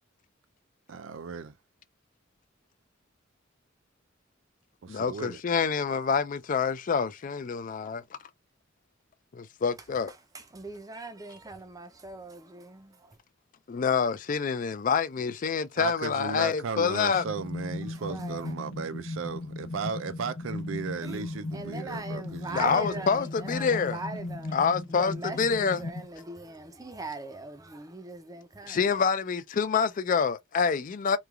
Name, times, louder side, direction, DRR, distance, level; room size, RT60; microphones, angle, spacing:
voice 1, 0.9-1.5 4.8-5.4 15.8-23.1, right 5 dB, 75° right, 0.4 m, -36 dB
voice 2, 4.9-8.0 9.3-10.1 13.7-17.2 22.5-24.0 24.5-25.8 28.7-31.2, left 6 dB, 40° left, 0.4 m, -27 dB
voice 3, 10.3-13.1 18.0-18.5 21.0-21.2 21.5-24.5 25.0-28.8, right 3 dB, 20° right, 0.5 m, -40 dB
sound 1, 17.1-26.1, left 2 dB, 70° left, 0.8 m, -37 dB
3.0 x 2.3 x 2.3 m
head